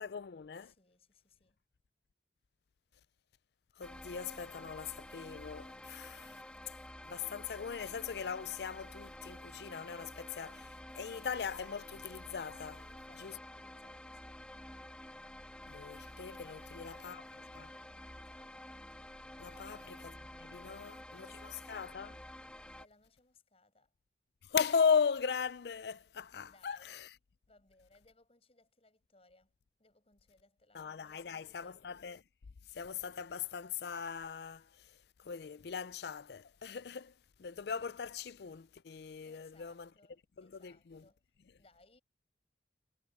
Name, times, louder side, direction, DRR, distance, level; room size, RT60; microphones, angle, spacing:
voice 1, 0.0-0.7 3.8-6.4 7.0-12.8 13.2-13.4 15.7-17.2 17.5-17.7 19.4-22.2 24.4-27.1 30.7-32.2 32.7-39.9 40.4-41.0, left 6 dB, 60° left, 0.4 m, -38 dB
voice 2, 0.6-1.6 12.5-14.4 16.3-18.7 19.5-19.9 20.6-21.6 22.8-23.9 26.4-27.0 27.5-29.5 29.8-31.9 37.5-37.6 39.2-41.3 41.6-42.0, left 3 dB, 35° left, 6.1 m, -66 dB
sound 1, 3.8-22.8, left 1 dB, 5° left, 2.3 m, -50 dB
head